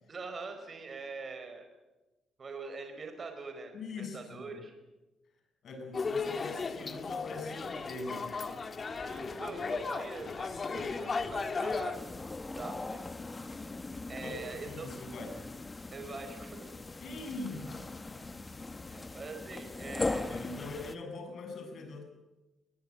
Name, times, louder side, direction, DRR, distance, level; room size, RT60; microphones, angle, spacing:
voice 1, 0.1-1.6 2.4-4.7 9.0-12.3 12.5-13.1 14.1-14.9 15.9-16.7 18.8-20.4, right 4 dB, 40° right, 6 dB, 4.8 m, -43 dB
voice 2, 3.7-4.6 5.6-8.4 9.0-9.2 14.2-15.4 17.0-18.6 20.3-22.0, left 3 dB, 60° left, 4 dB, 7.9 m, -43 dB
sound 1, 5.9-12.0, left 4 dB, 40° left, 2.0 m, -35 dB
sound 2, 11.9-20.9, left 3 dB, 20° left, 1.1 m, -40 dB
22.0 x 20.5 x 9.0 m, 1.1 s
cardioid pair, 90°, 0 cm